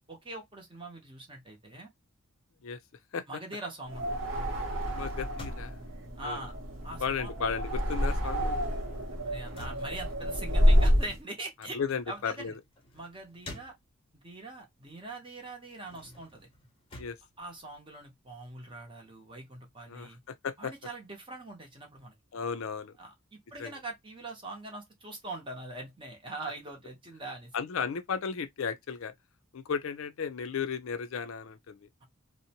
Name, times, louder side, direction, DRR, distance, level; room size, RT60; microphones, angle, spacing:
voice 1, 0.1-1.9 3.3-4.1 6.2-6.6 6.8-7.3 9.2-11.8 12.1-12.6 12.9-13.7 14.1-16.5 17.4-20.2 20.6-22.2 23.0-27.5, right 2 dB, 20° right, 0.8 m, -42 dB
sound 1, 3.9-11.2, equal, 60° right, 0.8 m, -28 dB
sound 2, 4.5-7.2 7.5-14.3 14.8-18.3, left 1 dB, 25° left, 0.7 m, -51 dB
voice 2, 4.9-5.8 6.2-6.4 7.0-8.6 11.7-12.6 17.0-17.2 19.9-20.7 22.3-22.9 23.6-23.8 27.5-29.1 29.5-31.9, left 6 dB, 65° left, 0.4 m, -34 dB
2.7 x 2.0 x 2.8 m
head